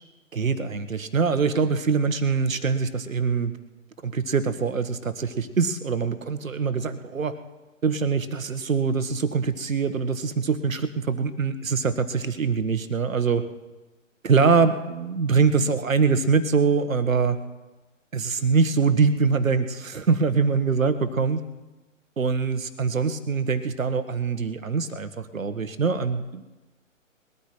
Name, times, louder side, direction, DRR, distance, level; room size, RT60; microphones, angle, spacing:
voice 1, 0.3-3.5 4.0-7.4 7.8-13.4 14.2-17.4 18.1-21.4 22.2-26.4, right 5 dB, 80° right, 11 dB, 1.4 m, -23 dB
20.5 x 13.5 x 4.5 m, 1.1 s
figure-of-eight pair, 130°, 40 cm